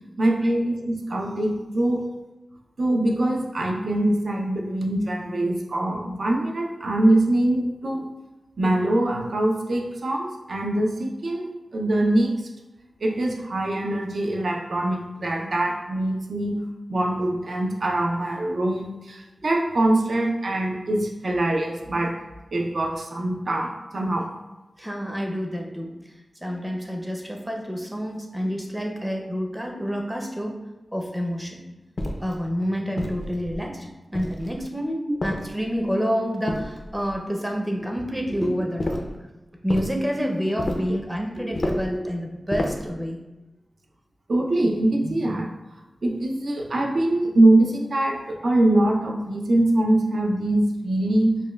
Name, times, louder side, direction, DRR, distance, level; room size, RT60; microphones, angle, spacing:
voice 1, 0.2-2.0 2.8-8.0 8.6-12.3 13.0-16.6 16.9-22.1 22.5-24.3 35.1-35.2 44.3-45.5 46.0-51.4, right 1 dB, 65° right, 1 dB, 0.5 m, -23 dB
voice 2, 24.8-25.9 26.4-30.6 30.9-31.6 32.2-33.9 34.1-39.0 39.6-43.2, equal, 5° right, 0 dB, 0.5 m, -28 dB
sound 1, 32.0-32.4 33.0-33.6 34.1-34.7 35.2-35.9 36.5-37.2 38.8-39.2 39.7-40.0 40.6-41.0 41.5-42.0 42.5-42.9, left 1 dB, 55° left, 0.4 m, -30 dB
5.1 x 2.2 x 2.2 m, 1.1 s
wide cardioid pair, 80°, 0 cm